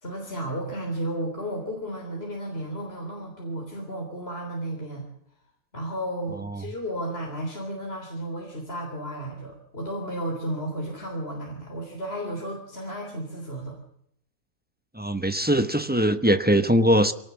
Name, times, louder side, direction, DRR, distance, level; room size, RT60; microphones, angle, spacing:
voice 1, 0.0-5.1 5.7-13.8, right 1 dB, 45° left, 0 dB, 3.9 m, -33 dB
voice 2, 14.9-17.1, equal, 10° right, 9 dB, 0.9 m, -21 dB
23.0 x 18.5 x 7.1 m, 0.71 s
omnidirectional pair, 1.4 m